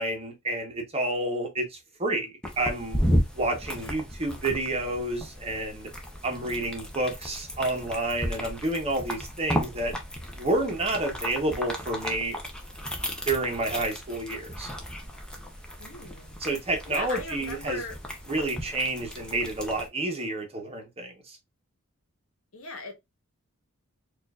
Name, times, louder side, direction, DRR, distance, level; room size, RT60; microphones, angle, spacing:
voice 1, 0.0-3.0 3.3-5.9 6.2-9.9 10.4-12.4 13.2-14.7 16.4-17.8 18.3-21.4, right 2 dB, 25° right, 0.9 m, -29 dB
sound 1, 2.4-19.9, equal, 5° left, 0.7 m, -34 dB
voice 2, 15.8-16.4 16.8-18.0 22.5-23.0, left 3 dB, 65° left, 1.2 m, -38 dB
4.4 x 2.5 x 2.3 m
head